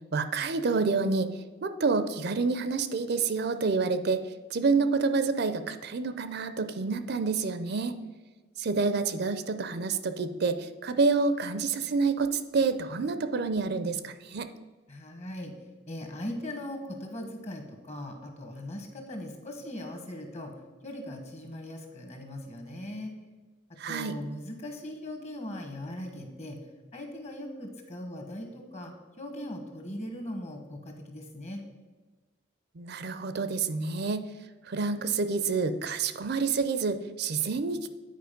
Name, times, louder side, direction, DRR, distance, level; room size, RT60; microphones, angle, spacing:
voice 1, 0.1-1.3 1.6-4.2 4.5-8.0 8.6-14.5 23.8-24.2 32.8-34.2 34.7-37.9, right 4 dB, 55° right, 11 dB, 0.5 m, -28 dB
voice 2, 14.9-15.5 15.9-20.5 20.8-23.1 23.9-26.6 26.9-28.9 29.2-31.6, left 1 dB, 35° left, 4 dB, 1.3 m, -39 dB
9.3 x 4.7 x 5.2 m, 1.3 s
head